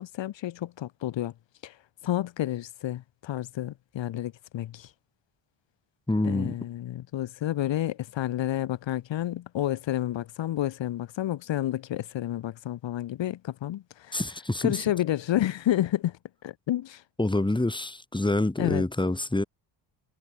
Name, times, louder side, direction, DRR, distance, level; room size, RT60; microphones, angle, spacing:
voice 1, 0.0-1.3 1.6-1.8 2.0-4.9 6.2-14.2 14.6-17.0 18.6-18.8, left 13 dB, 65° left, 2.2 m, -30 dB
voice 2, 6.1-6.5 14.1-14.8 17.2-19.4, left 2 dB, 10° left, 4.1 m, -26 dB
supercardioid pair, 80°, 48 cm